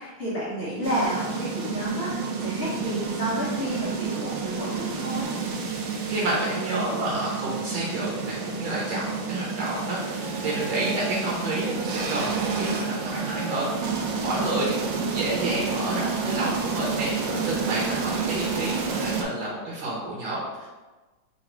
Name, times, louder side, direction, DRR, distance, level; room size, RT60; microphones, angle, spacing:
voice 1, 0.0-2.1 2.4-5.3, equal, 50° left, -8 dB, 0.7 m, -30 dB
sound 1, 0.8-19.2, right 5 dB, 90° right, 1.5 m, -30 dB
voice 2, 6.1-20.7, right 1 dB, 75° right, -5 dB, 1.6 m, -30 dB
4.0 x 2.5 x 4.4 m, 1.2 s
omnidirectional pair, 2.3 m